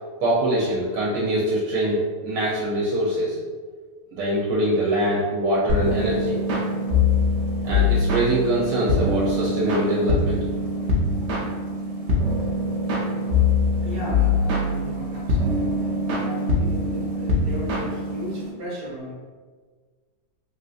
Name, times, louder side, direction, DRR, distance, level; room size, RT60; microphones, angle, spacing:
voice 1, 0.2-3.4 4.1-6.4 7.6-10.4, right 1 dB, 85° right, -6 dB, 1.3 m, -23 dB
sound 1, 5.7-18.5, left 2 dB, 65° right, 0.6 m, -23 dB
voice 2, 13.8-15.9 16.2-19.1, left 1 dB, 45° right, -6 dB, 1.1 m, -35 dB
3.6 x 2.5 x 2.4 m, 1.5 s
omnidirectional pair, 1.8 m